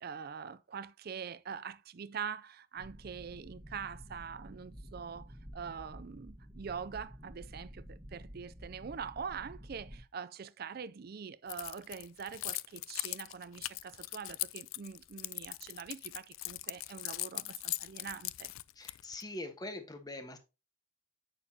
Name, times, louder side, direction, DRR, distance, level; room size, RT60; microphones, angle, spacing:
voice 1, 0.0-18.5, right 6 dB, 50° right, 0.4 m, -44 dB
sound 1, 2.8-10.0, equal, 25° right, 1.5 m, -50 dB
Keys jangling, 11.5-19.2, left 18 dB, 90° left, 0.4 m, -40 dB
voice 2, 18.7-20.4, left 2 dB, 20° left, 1.2 m, -43 dB
8.9 x 6.5 x 2.8 m
head